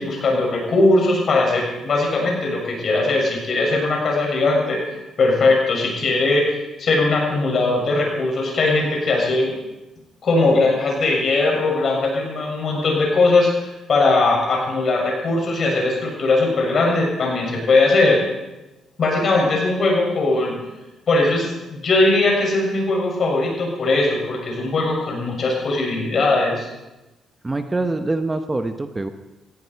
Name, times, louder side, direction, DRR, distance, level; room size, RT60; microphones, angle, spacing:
voice 1, 0.0-4.8 5.2-9.5 10.2-18.2 19.0-20.6 21.1-26.7, left 2 dB, 50° left, -1 dB, 6.9 m, -19 dB
voice 2, 27.4-29.1, right 2 dB, 20° right, 8 dB, 1.0 m, -24 dB
19.5 x 15.0 x 4.7 m, 1.0 s
cardioid pair, 90°, 0 cm